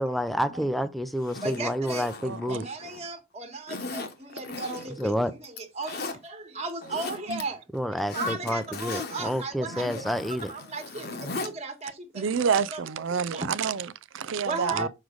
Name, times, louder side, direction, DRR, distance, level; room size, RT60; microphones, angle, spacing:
voice 1, 0.0-2.7 5.0-5.3 7.7-10.5 14.7-14.9, equal, ahead, 0.5 m, -29 dB
Zipper (clothing), 1.2-3.1 3.7-5.1 5.4-6.2 6.7-7.4 7.7-11.5 11.8-11.9, left 3 dB, 50° left, 1.1 m, -38 dB
voice 2, 1.4-2.1 2.5-7.6 8.1-10.1 10.5-12.2 12.5-12.8 13.1-13.5 14.4-14.9, right 3 dB, 30° right, 1.5 m, -36 dB
voice 3, 2.2-2.7 7.3-7.4 12.1-14.9, right 6 dB, 70° right, 0.4 m, -28 dB
6.5 x 4.7 x 3.9 m
head